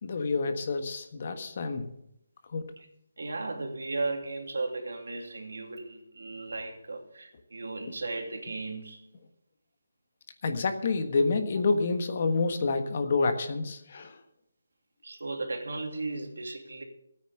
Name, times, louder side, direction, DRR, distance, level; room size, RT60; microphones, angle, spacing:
voice 1, 0.0-1.9 2.5-2.6 10.4-14.2, left 3 dB, 40° left, 7 dB, 1.4 m, -28 dB
voice 2, 3.2-9.0 15.0-16.8, right 3 dB, 85° right, 3 dB, 2.8 m, -35 dB
14.0 x 9.3 x 6.6 m, 0.77 s
hypercardioid pair, 170°, 0 cm